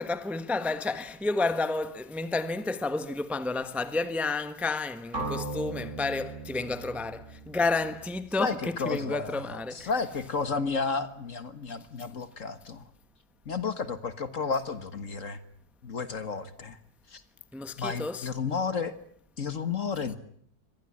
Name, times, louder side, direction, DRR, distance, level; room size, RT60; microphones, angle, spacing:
voice 1, 0.0-9.9 17.5-18.3, left 3 dB, ahead, 1.2 m, -31 dB
sound 1, 5.1-9.1, right 2 dB, 40° right, 7.5 m, -39 dB
voice 2, 8.4-12.9 13.4-15.4 15.8-16.8 17.1-17.2 17.8-18.9 19.4-20.2, left 5 dB, 45° left, 1.8 m, -32 dB
25.0 x 19.0 x 9.9 m
omnidirectional pair, 1.9 m